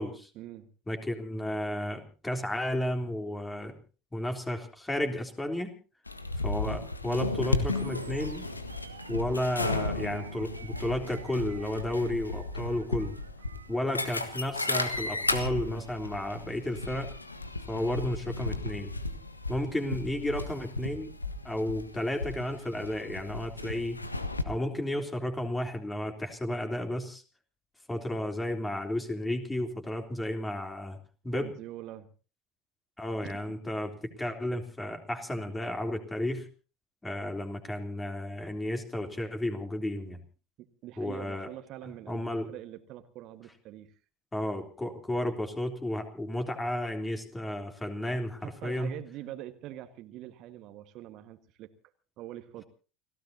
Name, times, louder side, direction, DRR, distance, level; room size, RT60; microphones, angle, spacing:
voice 1, 0.3-0.7 31.3-32.1 33.2-33.6 40.6-43.9 48.4-51.7 52.2-52.6, right 13 dB, 50° right, 9 dB, 1.5 m, -44 dB
voice 2, 0.9-3.8 4.1-5.7 6.4-8.5 9.1-13.2 13.7-17.1 17.7-18.9 19.5-21.1 21.4-24.0 24.5-27.2 27.9-31.0 31.2-31.5 33.0-36.5 37.0-40.2 41.0-41.5 42.1-42.5 44.3-48.9, left 1 dB, 10° left, 5 dB, 3.4 m, -33 dB
sound 1, 6.1-24.4, left 2 dB, 90° left, 1.5 m, -34 dB
Animal, 7.7-15.7, right 8 dB, 80° right, 2.1 m, -52 dB
30.0 x 16.5 x 2.8 m, 0.36 s
figure-of-eight pair, 70°, 0 cm